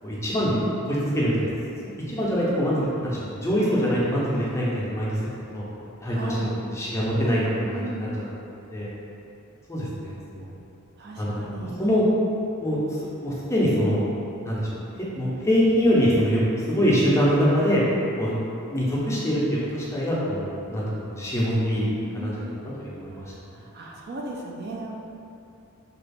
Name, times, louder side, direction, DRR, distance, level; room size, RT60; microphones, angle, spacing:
voice 1, 0.0-0.6 0.9-1.5 1.8-5.2 5.5-5.6 6.0-8.1 8.4-8.9 9.7-10.5 11.2-12.1 12.6-12.8 13.2-14.0 14.4-17.8 18.2-18.3 18.7-23.3, equal, 15° left, -7 dB, 0.5 m, -24 dB
voice 2, 6.1-6.5 7.7-8.1 11.0-11.8 21.9-22.4 23.6-24.9, right 2 dB, 50° right, -1 dB, 0.4 m, -36 dB
2.9 x 2.4 x 3.3 m, 2.7 s
head